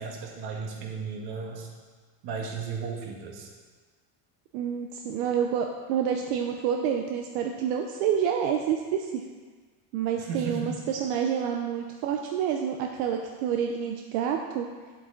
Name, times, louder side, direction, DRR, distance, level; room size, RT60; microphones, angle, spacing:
voice 1, 0.0-1.7 2.2-3.5 10.2-10.8, right 5 dB, 55° right, 0 dB, 1.8 m, -35 dB
voice 2, 4.5-9.2 9.9-14.7, right 8 dB, 85° right, 3 dB, 0.8 m, -28 dB
8.7 x 8.2 x 3.9 m, 1.5 s
cardioid pair, 135°, 45 cm